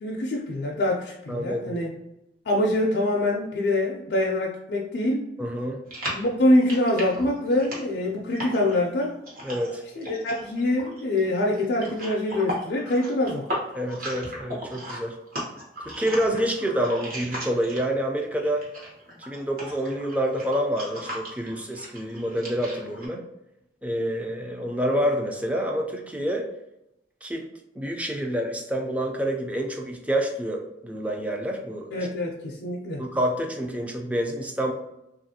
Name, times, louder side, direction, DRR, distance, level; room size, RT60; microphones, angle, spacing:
voice 1, 0.0-1.9 2.5-5.3 6.1-9.2 10.0-13.4 31.9-33.0, left 1 dB, 70° left, -2 dB, 0.4 m, -24 dB
voice 2, 1.3-1.8 5.4-5.8 9.4-9.8 13.7-15.2 15.9-18.6 19.2-23.2 23.8-26.5 27.2-27.5 27.8-32.0 33.0-34.7, equal, 10° right, 2 dB, 0.3 m, -27 dB
sound 1, 5.9-18.1 18.4-23.1, equal, 50° right, 1.0 m, -37 dB
2.9 x 2.4 x 2.7 m, 0.86 s
head